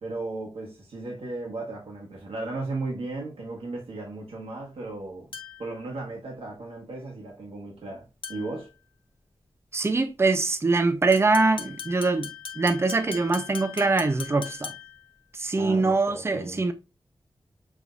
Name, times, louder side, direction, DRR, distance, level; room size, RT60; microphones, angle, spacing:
voice 1, 0.0-5.3 5.6-8.7 15.5-16.6, right 2 dB, 85° right, 1.2 m, -35 dB
sound 1, 5.3-5.8 8.2-8.6 11.1-15.1, left 7 dB, 65° left, 0.6 m, -39 dB
voice 2, 9.7-12.3 12.6-14.7 15.3-16.7, right 3 dB, 25° right, 0.5 m, -23 dB
6.0 x 2.7 x 2.4 m
wide cardioid pair, 100°, 10 cm